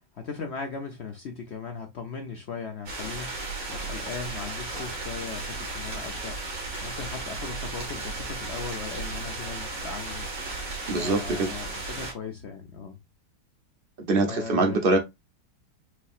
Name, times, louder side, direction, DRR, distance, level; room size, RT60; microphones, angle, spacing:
voice 1, 0.0-10.3 10.8-13.0 14.2-14.8, left 5 dB, 75° left, 0.6 m, -38 dB
sound 1, 2.9-12.1, right 3 dB, 85° right, 2.6 m, -35 dB
voice 2, 10.9-11.5 14.1-15.0, right 2 dB, 50° right, 0.6 m, -23 dB
6.0 x 2.8 x 2.4 m
omnidirectional pair, 2.0 m